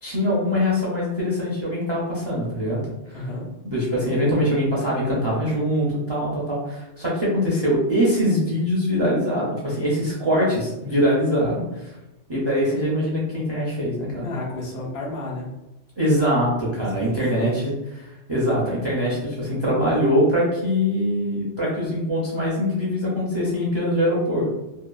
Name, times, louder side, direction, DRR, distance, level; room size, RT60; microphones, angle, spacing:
voice 1, 0.0-2.8 3.1-3.2 3.6-12.0 12.3-14.3 16.0-17.7 18.0-24.5, equal, 35° right, -6 dB, 0.4 m, -23 dB
voice 2, 3.1-3.5 14.2-15.5 17.0-17.5, left 2 dB, 65° left, -3 dB, 0.9 m, -32 dB
2.8 x 2.2 x 2.3 m, 0.95 s
omnidirectional pair, 1.2 m